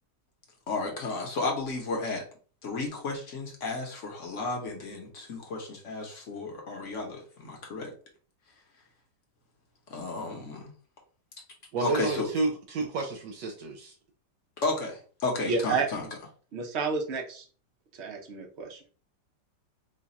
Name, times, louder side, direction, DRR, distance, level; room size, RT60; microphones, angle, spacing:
voice 1, 0.7-2.2 2.6-7.9 9.9-10.7 11.8-12.3 14.6-16.1, left 3 dB, 50° left, 1 dB, 1.0 m, -33 dB
voice 2, 11.7-13.9, right 3 dB, 80° right, 2 dB, 1.3 m, -30 dB
voice 3, 15.5-15.9 16.5-17.5 17.9-18.8, right 4 dB, 55° right, 1 dB, 0.7 m, -30 dB
3.1 x 2.3 x 4.0 m, 0.41 s
omnidirectional pair, 1.9 m